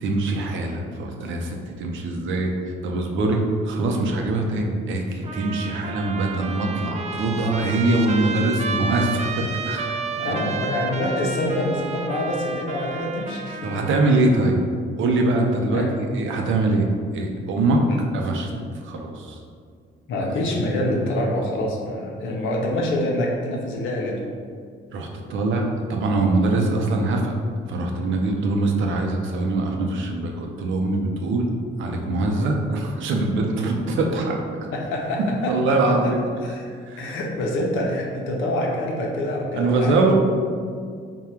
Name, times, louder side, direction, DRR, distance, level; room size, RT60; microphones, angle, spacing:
voice 1, 0.0-10.0 10.2-10.5 13.6-14.6 15.0-16.9 17.1-17.8 18.1-18.5 18.8-19.4 24.9-27.3 27.7-31.5 31.8-34.7 35.5-36.2 36.9-37.1 39.6-40.1, right 2 dB, 75° right, 2 dB, 0.6 m, -23 dB
Trumpet, 5.2-14.4, right 4 dB, 35° right, 0.3 m, -31 dB
voice 2, 7.3-7.6 10.1-13.8 15.7-15.9 17.9-18.0 20.1-24.2 34.7-35.8 36.0-36.1 36.4-36.6 37.0-40.1, left 1 dB, 85° left, -1 dB, 0.7 m, -26 dB
3.7 x 2.3 x 4.4 m, 2.1 s
cardioid pair, 90°, 20 cm